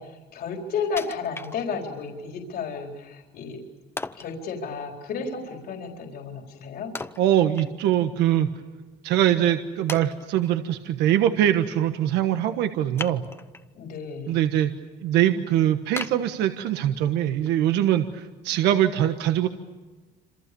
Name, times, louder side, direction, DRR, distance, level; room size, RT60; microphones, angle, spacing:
voice 1, 0.0-3.6 4.1-6.9 13.7-14.4, left 5 dB, 65° left, 2 dB, 4.4 m, -32 dB
Wood, 1.0-2.1 2.6-2.7 4.0-4.4 7.0-8.1 8.4-8.5 9.2-9.3 9.9-10.6 13.0-13.7 14.2-14.6 15.1-15.2 16.0-17.0 17.5-17.6, left 3 dB, 15° left, 1.0 m, -37 dB
voice 2, 7.2-8.5 9.0-13.2 14.3-14.7 15.0-19.5, right 11 dB, 90° right, 7 dB, 1.4 m, -22 dB
27.5 x 27.0 x 7.0 m, 1.2 s
cardioid pair, 110°, 17 cm